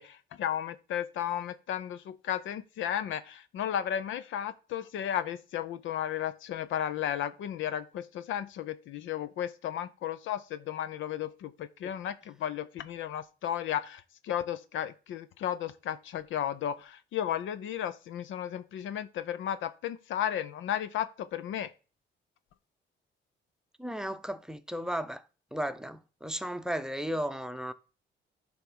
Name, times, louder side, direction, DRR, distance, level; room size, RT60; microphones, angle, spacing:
voice 1, 0.0-21.7, left 10 dB, 80° left, 0.6 m, -34 dB
voice 2, 23.8-25.2 25.5-27.7, equal, 5° right, 0.7 m, -34 dB
10.5 x 3.6 x 6.2 m
cardioid pair, 90°, 20 cm